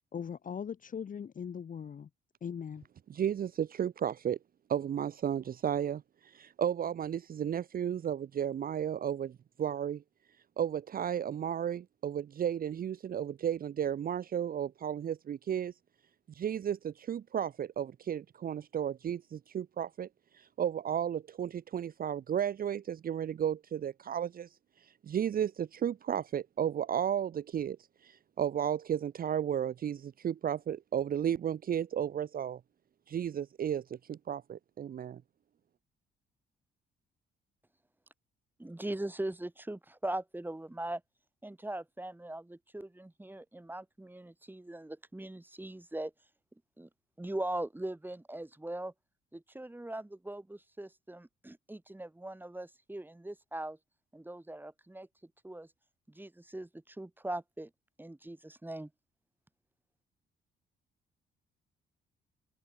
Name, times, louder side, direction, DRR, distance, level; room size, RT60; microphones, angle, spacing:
voice 1, 0.1-2.1 2.4-2.9, left 7 dB, 45° left, 1.1 m, -40 dB
voice 2, 3.1-4.4 4.7-10.0 10.6-15.7 16.3-20.1 20.3-24.5 24.8-27.8 28.0-32.6 33.1-35.2, right 9 dB, 45° right, 0.7 m, -33 dB
voice 3, 38.6-41.0 41.4-46.1 46.8-46.9 47.2-48.9 49.3-53.8 54.1-55.1 55.4-55.7 56.1-57.7 58.0-58.9, right 1 dB, 10° right, 4.8 m, -40 dB
open air
cardioid pair, 90°, 20 cm